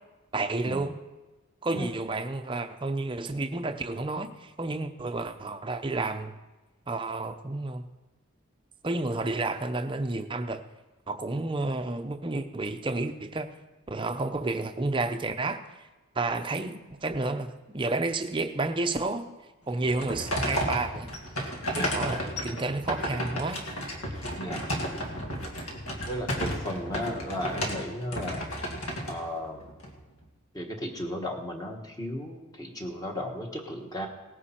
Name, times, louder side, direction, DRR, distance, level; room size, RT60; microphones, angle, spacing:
voice 1, 0.3-1.0 1.6-6.4 6.9-7.8 8.8-10.6 11.1-13.5 13.9-15.6 16.1-19.3 19.7-21.1 21.4-23.6 24.1-24.4, right 2 dB, 20° right, 7 dB, 0.6 m, -31 dB
sound 1, 19.7-29.9, equal, 70° left, 2.3 m, -33 dB
voice 2, 24.4-24.8 26.0-28.5 29.1-29.7 30.5-34.1, equal, 15° left, 2 dB, 1.3 m, -35 dB
18.0 x 9.6 x 4.4 m, 1.2 s
head